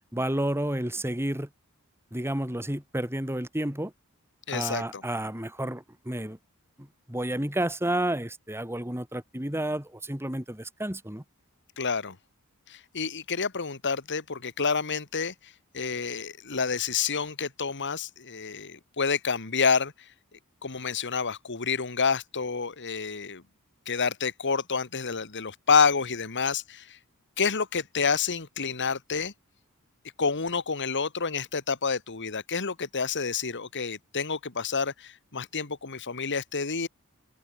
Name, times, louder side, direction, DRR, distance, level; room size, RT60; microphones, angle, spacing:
voice 1, 0.1-1.5 2.1-3.9 4.5-6.4 6.8-11.2, right 1 dB, 10° right, 3.5 m, -31 dB
voice 2, 4.5-5.0 11.8-12.2 12.7-20.1 20.6-23.4 23.9-27.0 27.4-29.3 30.2-36.9, left 5 dB, 55° left, 1.8 m, -28 dB
head